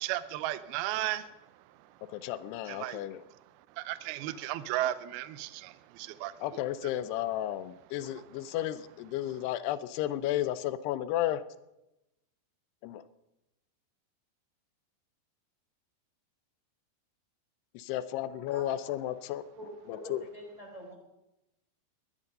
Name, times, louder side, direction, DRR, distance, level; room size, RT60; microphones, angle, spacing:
voice 1, 0.0-1.3 1.9-2.0 2.7-3.0 3.3-3.4 3.7-6.6 8.0-8.2, right 14 dB, 80° right, 14 dB, 2.5 m, -35 dB
voice 2, 2.1-3.2 6.4-11.4 12.8-13.0 17.7-19.4 19.9-20.2, left 13 dB, 85° left, 14 dB, 2.8 m, -33 dB
voice 3, 19.6-20.9, equal, 10° right, -1 dB, 3.5 m, -45 dB
19.5 x 12.0 x 5.4 m, 0.93 s
omnidirectional pair, 4.6 m